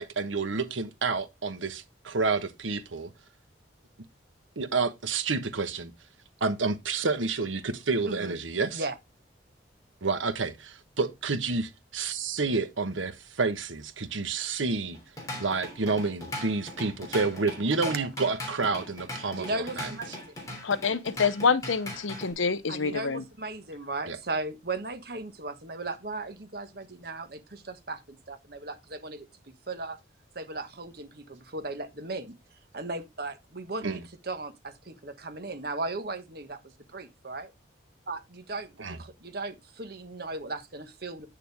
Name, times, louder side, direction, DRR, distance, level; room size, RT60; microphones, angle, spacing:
voice 1, 0.0-3.1 4.6-5.9 6.4-8.8 10.0-15.0 15.4-19.9 24.1-24.2 33.8-34.0 38.8-39.0, right 4 dB, 85° right, 1.2 m, -29 dB
voice 2, 8.1-8.4 8.7-9.0 18.0-18.1 19.4-20.3 22.7-29.3 29.7-30.0 30.3-32.3 32.7-36.6 36.9-37.5 38.1-41.3, right 2 dB, 50° right, 1.3 m, -37 dB
Drum kit / Drum, 14.9-22.3, left 1 dB, 15° left, 3.2 m, -39 dB
voice 3, 20.6-23.2, left 5 dB, 85° left, 0.8 m, -26 dB
9.0 x 6.8 x 3.4 m
head